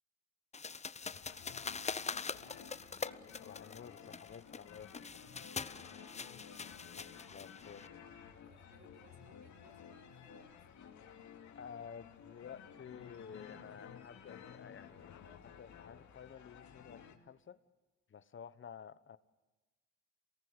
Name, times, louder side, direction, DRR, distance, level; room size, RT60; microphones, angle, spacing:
sound 1, 0.5-7.9, left 5 dB, 20° left, 0.7 m, -44 dB
sound 2, 1.0-17.2, left 8 dB, 70° left, 2.7 m, -54 dB
voice 1, 2.0-2.8 5.2-6.4 8.4-10.5, right 3 dB, 45° right, 1 dB, 5.6 m, -65 dB
voice 2, 3.3-4.9 7.0-7.9 11.5-15.1 15.4-17.6 18.1-19.2, left 7 dB, 40° left, 14 dB, 1.2 m, -52 dB
27.5 x 18.5 x 8.1 m, 1.2 s
cardioid pair, 90°, 30 cm